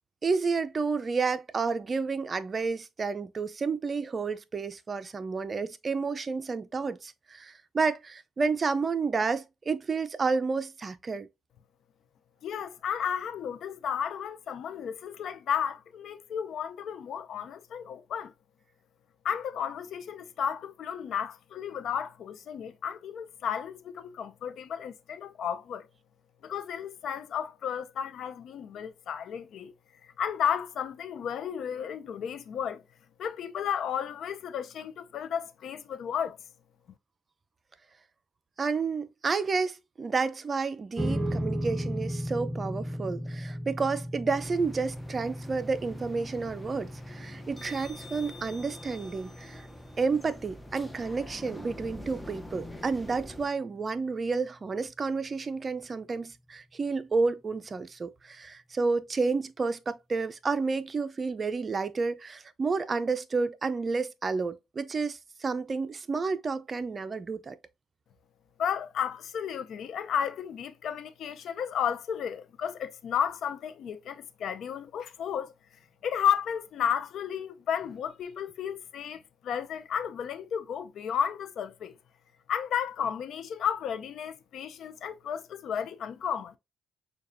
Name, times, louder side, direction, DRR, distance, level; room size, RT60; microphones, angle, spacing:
voice 1, 0.2-11.3 38.6-49.6 50.0-67.6, right 4 dB, 40° right, 0.5 m, -30 dB
voice 2, 12.4-18.3 19.2-25.8 26.4-29.7 30.2-32.8 33.2-36.4 68.6-75.5 76.0-81.9 82.5-86.6, left 8 dB, 70° left, 0.5 m, -33 dB
sound 1, 41.0-53.5, equal, 15° right, 1.1 m, -37 dB
sound 2, 44.3-53.5, left 1 dB, 10° left, 0.9 m, -46 dB
6.5 x 2.3 x 2.6 m
supercardioid pair, 65°, 0 cm